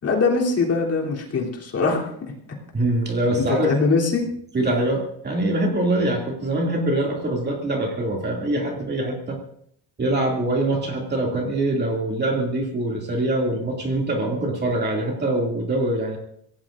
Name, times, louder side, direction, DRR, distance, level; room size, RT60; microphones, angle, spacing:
voice 1, 0.0-2.3 3.5-4.3, left 4 dB, 35° left, -2 dB, 3.3 m, -22 dB
voice 2, 2.7-3.7 4.5-9.4 10.0-16.2, right 1 dB, 25° right, 0 dB, 2.5 m, -23 dB
25.0 x 17.5 x 2.6 m, 0.68 s
cardioid pair, 160°, 41 cm